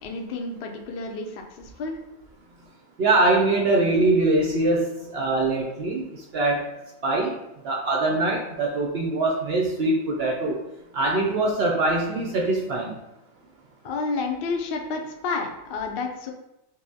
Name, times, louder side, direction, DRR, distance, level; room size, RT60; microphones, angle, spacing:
voice 1, 0.0-2.0 13.8-16.3, left 4 dB, 70° left, 3 dB, 0.5 m, -30 dB
voice 2, 3.0-6.0 6.3-6.7 7.0-7.4 7.6-10.6 10.9-13.0, right 2 dB, 60° right, -2 dB, 0.7 m, -23 dB
5.3 x 2.0 x 2.7 m, 0.89 s
omnidirectional pair, 1.4 m